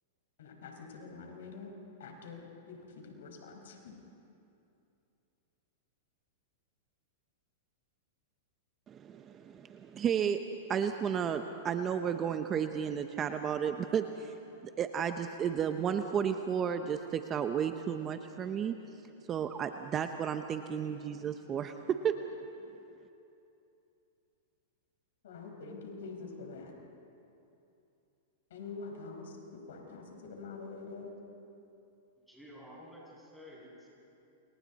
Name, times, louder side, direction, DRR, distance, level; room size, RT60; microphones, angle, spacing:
voice 1, 0.4-3.9 25.2-26.7 28.5-31.1, left 4 dB, 75° left, 2 dB, 5.0 m, -46 dB
voice 2, 8.9-10.4 10.7-14.3 14.6-18.7 19.3-22.1, right 8 dB, 25° right, 7 dB, 0.8 m, -33 dB
voice 3, 32.3-33.9, equal, ahead, -5 dB, 7.5 m, -51 dB
28.5 x 28.5 x 4.2 m, 2.8 s
hypercardioid pair, 140°, 0 cm